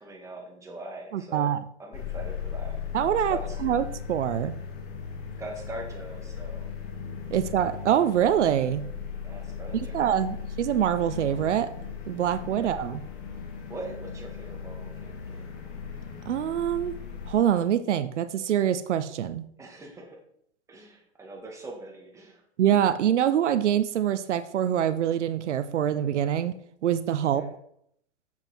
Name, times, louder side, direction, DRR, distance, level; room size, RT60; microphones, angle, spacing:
voice 1, 0.0-1.5 1.8-2.8 3.3-3.6 5.4-6.7 9.2-10.4 12.5-12.9 13.7-15.5 19.6-20.2 20.7-22.4 27.3-27.5, right 1 dB, 10° right, -1 dB, 2.0 m, -42 dB
voice 2, 1.1-1.6 2.9-4.5 7.3-8.9 9.9-11.7 12.1-13.0 16.3-16.9 17.3-19.4 22.6-26.6 26.8-27.4, right 10 dB, 80° right, 13 dB, 0.7 m, -25 dB
sound 1, 1.9-17.3, left 7 dB, 40° left, 1.9 m, -37 dB
7.6 x 7.4 x 4.5 m, 0.70 s
hypercardioid pair, 135°, 35 cm